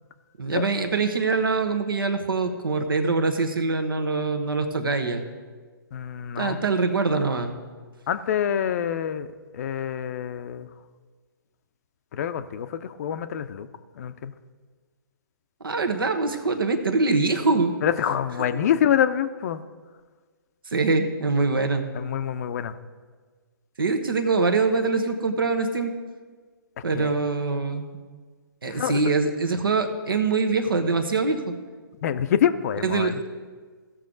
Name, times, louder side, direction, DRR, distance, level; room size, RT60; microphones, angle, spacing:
voice 1, 0.4-5.2 6.4-7.5 15.6-17.7 18.5-18.6 20.7-21.8 23.8-25.9 26.8-27.9 28.6-31.5 32.8-33.2, right 3 dB, 75° right, 7 dB, 1.2 m, -24 dB
voice 2, 5.9-6.6 8.1-10.7 12.1-13.7 14.0-14.3 17.8-19.6 21.9-22.7 26.9-27.1 28.7-29.0 32.0-33.1, left 9 dB, 45° left, 11 dB, 0.6 m, -26 dB
16.0 x 6.4 x 3.9 m, 1.5 s
figure-of-eight pair, 130°, 12 cm